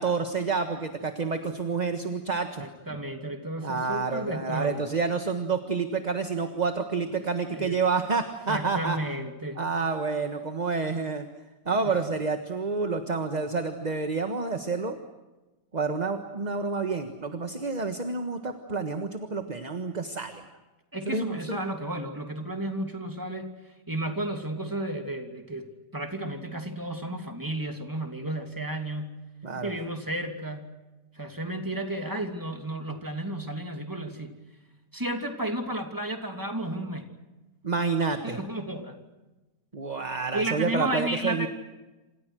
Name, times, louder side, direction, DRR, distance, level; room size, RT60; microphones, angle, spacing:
voice 1, 0.0-2.6 3.6-9.0 9.6-11.3 11.6-15.0 15.7-20.4 21.1-21.6 29.4-29.7 37.6-38.4 39.7-41.5, right 4 dB, 25° right, 7 dB, 1.5 m, -29 dB
voice 2, 2.6-4.9 7.5-7.8 8.5-9.6 11.7-11.9 20.9-23.5 23.9-25.6 25.9-29.2 29.6-30.7 31.1-34.3 34.9-37.1 38.2-39.0 40.3-41.5, right 1 dB, 10° right, 4 dB, 2.9 m, -32 dB
28.0 x 27.5 x 6.4 m, 1.1 s
omnidirectional pair, 1.8 m